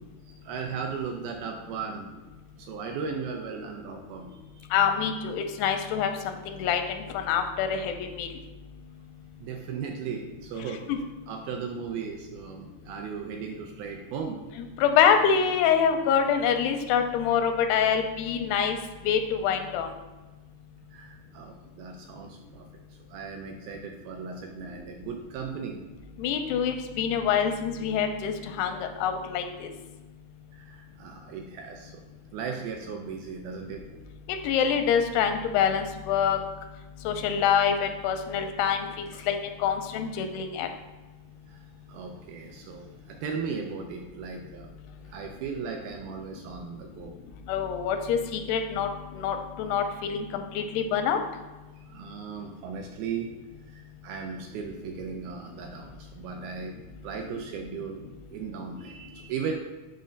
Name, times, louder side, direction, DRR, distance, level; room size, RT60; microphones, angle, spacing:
voice 1, 0.4-2.1 2.6-4.3 4.6-4.7 9.4-10.8 11.3-14.4 20.9-22.7 23.1-25.8 30.5-32.0 32.3-33.9 39.1-39.3 41.5-41.6 41.9-44.7 45.0-47.2 51.9-53.3 53.7-56.8 57.0-58.0 58.3-59.5, right 6 dB, 80° right, 2 dB, 2.2 m, -36 dB
voice 2, 4.7-8.3 10.9-11.0 14.8-18.8 19.1-19.9 26.2-29.7 34.4-36.4 37.1-38.9 39.3-40.7 47.5-49.8 50.1-51.2, left 7 dB, 85° left, 6 dB, 2.6 m, -25 dB
7.6 x 2.6 x 5.1 m, 1.2 s
omnidirectional pair, 4.6 m